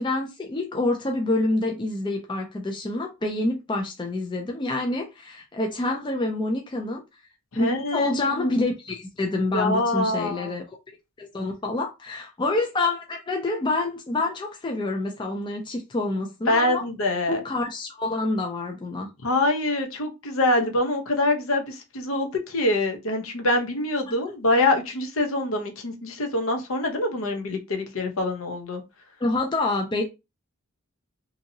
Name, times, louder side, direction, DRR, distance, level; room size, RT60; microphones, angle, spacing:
voice 1, 0.0-7.0 7.6-10.8 11.2-16.8 17.3-19.1 24.1-24.2 29.2-30.0, left 2 dB, 20° left, 0.3 m, -27 dB
voice 2, 7.5-8.5 9.5-10.5 16.5-17.4 19.2-28.8, left 2 dB, 70° left, 0.7 m, -25 dB
2.7 x 2.6 x 2.7 m
head